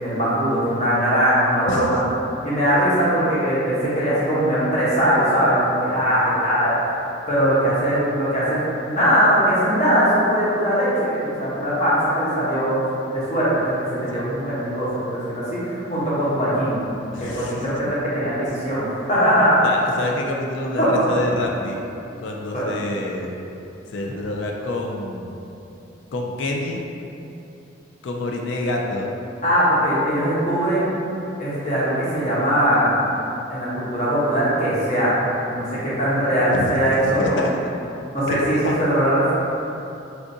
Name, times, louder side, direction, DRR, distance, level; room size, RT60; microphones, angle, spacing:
voice 1, 0.0-2.0 2.4-6.7 7.3-12.8 13.1-19.5 20.8-21.0 22.5-22.7 29.4-30.9 31.4-32.9 33.5-35.2 35.5-37.4 38.1-39.3, equal, 35° left, -9 dB, 1.0 m, -20 dB
voice 2, 17.1-17.6 19.6-21.8 22.2-23.4 23.9-25.3 26.1-26.8 28.0-29.1 36.5-37.5 38.3-38.7, left 2 dB, 75° left, 0 dB, 0.3 m, -27 dB
4.4 x 2.4 x 2.6 m, 2.8 s
head